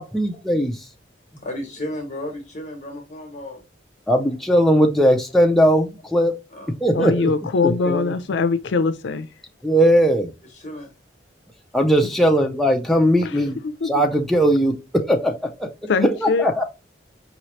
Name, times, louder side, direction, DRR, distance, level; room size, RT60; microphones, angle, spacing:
voice 1, 0.0-0.9 4.1-6.3 6.8-7.3 7.6-8.2 9.6-10.3 11.7-13.6 13.8-15.7 16.0-16.6, equal, ahead, 0.4 m, -19 dB
voice 2, 1.4-3.6 6.5-6.7 10.5-10.9, left 1 dB, 40° left, 1.1 m, -33 dB
voice 3, 6.9-9.3 13.2-14.0 15.9-16.5, left 4 dB, 75° left, 0.4 m, -22 dB
4.8 x 3.0 x 3.1 m
head